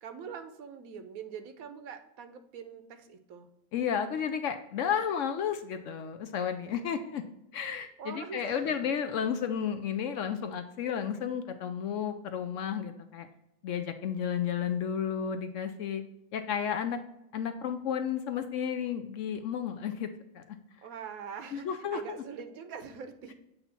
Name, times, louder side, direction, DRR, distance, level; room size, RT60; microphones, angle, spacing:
voice 1, 0.0-3.5 8.0-8.9 20.8-23.3, right 7 dB, 70° right, 9 dB, 1.1 m, -43 dB
voice 2, 3.7-7.2 7.5-13.3 13.6-16.0 16.3-17.0 17.3-20.1 20.3-20.6 21.5-22.2, left 8 dB, 70° left, 8 dB, 0.8 m, -32 dB
8.1 x 2.8 x 5.7 m, 0.85 s
omnidirectional pair, 1.6 m